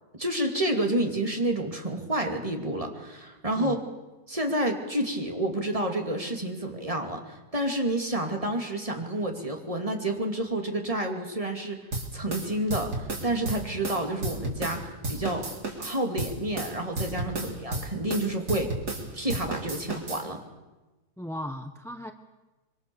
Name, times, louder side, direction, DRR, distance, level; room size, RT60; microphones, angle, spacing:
voice 1, 0.1-3.8 4.3-11.8 12.1-15.5 15.8-18.7 19.1-20.4, right 1 dB, 20° right, 3 dB, 2.7 m, -29 dB
sound 1, 11.9-14.8 15.0-19.0 19.3-20.2, right 2 dB, 80° right, 4.0 m, -32 dB
voice 2, 21.2-22.1, equal, ahead, 7 dB, 0.8 m, -37 dB
25.0 x 23.5 x 7.1 m, 1.1 s
omnidirectional pair, 1.7 m